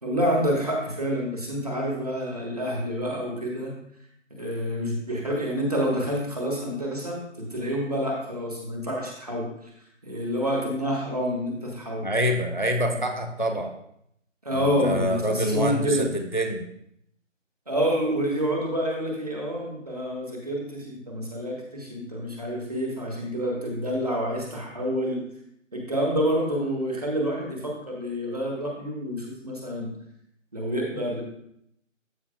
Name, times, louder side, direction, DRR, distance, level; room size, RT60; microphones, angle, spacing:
voice 1, 0.0-3.7 4.3-9.7 10.0-12.1 12.8-13.0 14.4-16.1 17.7-25.2 25.7-30.0 30.5-31.2, equal, 30° right, -1 dB, 1.4 m, -28 dB
voice 2, 12.0-13.7 14.5-16.6, equal, 35° left, 5 dB, 0.5 m, -26 dB
13.0 x 5.5 x 2.3 m, 0.74 s
figure-of-eight pair, 165°, 39 cm